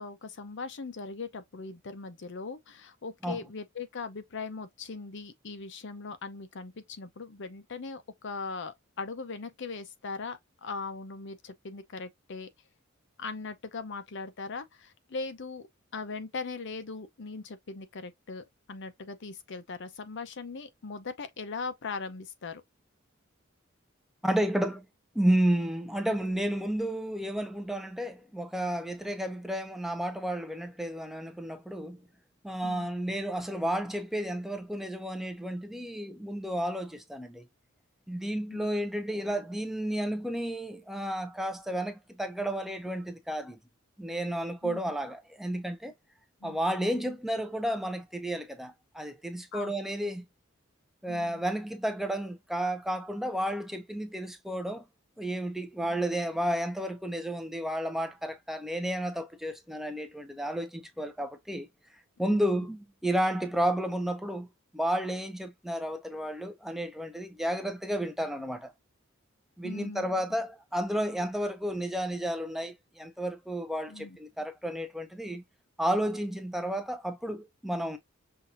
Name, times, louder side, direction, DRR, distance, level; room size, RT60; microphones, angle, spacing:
voice 1, 0.0-12.5 13.2-15.7 15.9-22.6 32.6-32.9 38.5-38.7 44.6-44.8 46.4-46.6 49.5-49.7 51.1-51.4 62.3-62.7 69.6-70.1 73.9-74.2, left 4 dB, 60° left, 0.7 m, -40 dB
voice 2, 24.2-24.8 25.1-32.0 32.4-37.4 38.1-43.6 44.0-45.9 46.4-50.2 51.0-54.8 55.2-61.7 62.2-64.5 64.7-68.7 69.6-75.4 75.8-78.0, right 1 dB, ahead, 0.7 m, -32 dB
5.8 x 2.6 x 2.5 m
head